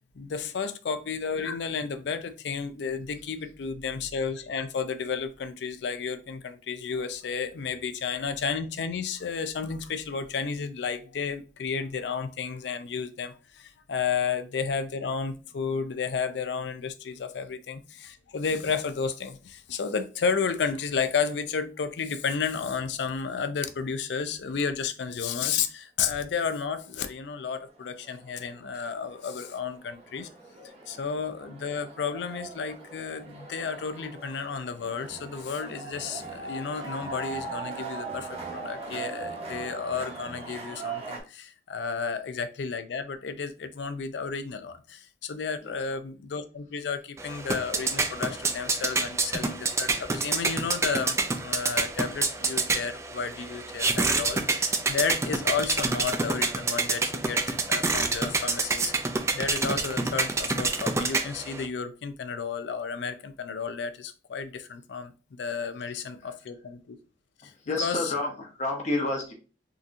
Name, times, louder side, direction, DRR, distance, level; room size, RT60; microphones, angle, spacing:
voice 1, 0.1-30.3 30.9-58.9 59.3-65.1 65.4-67.0 67.7-68.1, left 6 dB, 75° left, 0.4 m, -32 dB
sound 1, 26.6-26.7 27.4-41.2, right 4 dB, 35° right, 0.9 m, -40 dB
sound 2, 47.2-61.6, right 3 dB, 15° right, 0.3 m, -28 dB
voice 2, 67.4-69.3, left 2 dB, 40° left, 0.9 m, -30 dB
3.7 x 2.7 x 2.5 m
head